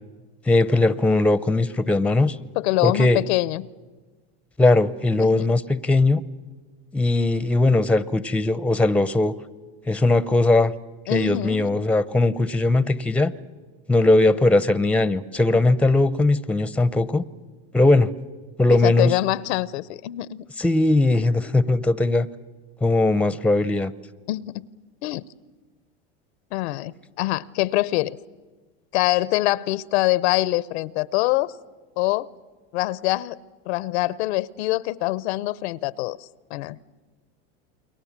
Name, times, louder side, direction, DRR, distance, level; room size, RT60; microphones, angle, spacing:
voice 1, 0.5-2.4 2.8-3.2 4.6-6.2 6.9-9.3 9.9-10.7 11.1-13.3 13.9-17.2 17.7-18.1 18.6-19.1 20.6-22.3 22.8-23.9, left 2 dB, 5° left, 17 dB, 0.7 m, -19 dB
voice 2, 2.6-3.7 5.2-5.5 11.1-11.8 18.7-20.4 24.3-24.7 25.0-25.2 26.5-28.2 28.9-31.5 32.0-32.3 32.7-33.4 33.7-36.8, left 18 dB, 75° left, 20 dB, 0.8 m, -24 dB
29.0 x 22.5 x 7.4 m, 1.3 s
supercardioid pair, 110°, 33 cm